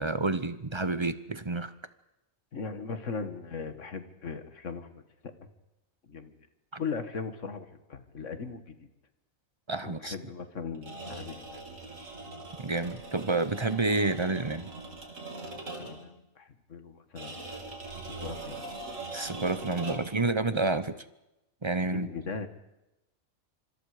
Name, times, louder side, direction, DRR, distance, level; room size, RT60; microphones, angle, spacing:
voice 1, 0.0-1.7 6.7-6.8 9.7-10.1 12.6-14.7 19.1-21.0 21.6-22.1, right 3 dB, 25° right, 13 dB, 0.7 m, -29 dB
voice 2, 2.5-5.3 6.1-6.3 6.8-8.9 9.8-11.6 15.5-17.5 18.2-18.8 21.9-22.5, left 5 dB, 60° left, 9 dB, 1.9 m, -39 dB
sound 1, 10.7-16.1 17.2-20.2, right 2 dB, 65° right, 3.4 m, -41 dB
26.5 x 25.5 x 5.0 m, 0.92 s
omnidirectional pair, 1.4 m